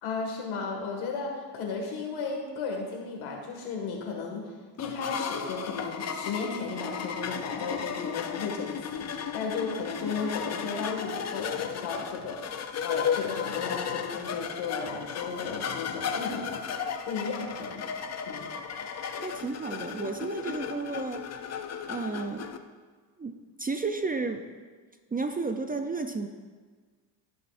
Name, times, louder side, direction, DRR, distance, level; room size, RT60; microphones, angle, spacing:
voice 1, 0.0-4.5 4.8-16.6 17.0-17.8 18.3-18.5, left 4 dB, 75° left, 1 dB, 2.0 m, -34 dB
sound 1, 4.8-22.6, left 7 dB, 35° left, 0.6 m, -35 dB
voice 2, 19.2-21.3 21.9-22.5 23.2-23.3 23.6-24.5 25.1-26.3, right 3 dB, 20° right, 7 dB, 0.5 m, -32 dB
15.5 x 5.8 x 2.6 m, 1.5 s
supercardioid pair, 80°, 48 cm